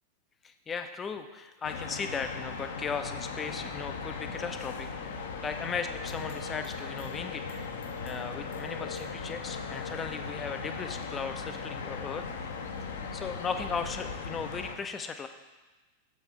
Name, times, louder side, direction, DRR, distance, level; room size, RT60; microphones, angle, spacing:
voice 1, 0.4-7.8 8.0-12.2 13.1-15.3, left 5 dB, 20° left, 7 dB, 0.5 m, -37 dB
sound 1, 1.6-14.8, left 5 dB, 60° left, 0.6 m, -38 dB
7.0 x 5.6 x 3.7 m, 1.2 s
figure-of-eight pair, 90°, 0 cm